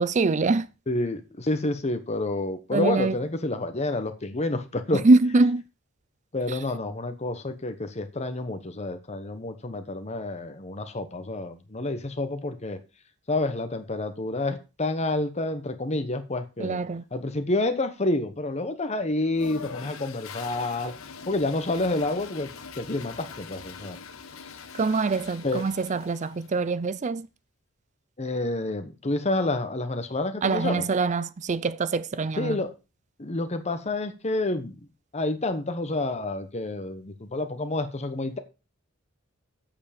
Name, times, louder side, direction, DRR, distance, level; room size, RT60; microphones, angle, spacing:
voice 1, 0.0-0.7 2.7-3.1 5.0-5.6 16.6-17.0 24.8-27.3 30.4-32.6, right 3 dB, 35° right, 0.5 m, -23 dB
voice 2, 0.9-5.0 6.3-12.8 13.3-16.8 17.1-20.9 21.3-22.5 22.8-24.0 25.4-25.6 28.2-30.8 32.4-32.7 33.2-34.8 35.1-38.4, left 2 dB, 30° left, 1.0 m, -29 dB
Toilet flush, 19.3-26.6, left 6 dB, 85° left, 1.0 m, -43 dB
8.2 x 7.1 x 5.1 m
head